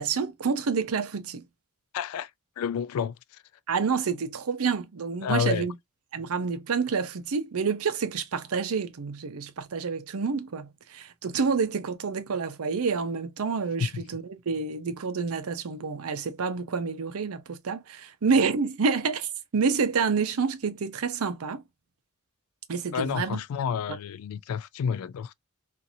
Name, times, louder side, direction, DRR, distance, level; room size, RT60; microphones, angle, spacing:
voice 1, 0.0-1.5 3.7-5.8 6.1-21.6 22.7-23.4, right 5 dB, 80° right, 0.6 m, -28 dB
voice 2, 1.9-2.3 2.6-3.4 5.2-5.6 13.8-14.0 22.9-25.3, left 7 dB, 80° left, 0.3 m, -30 dB
2.8 x 2.5 x 2.5 m
head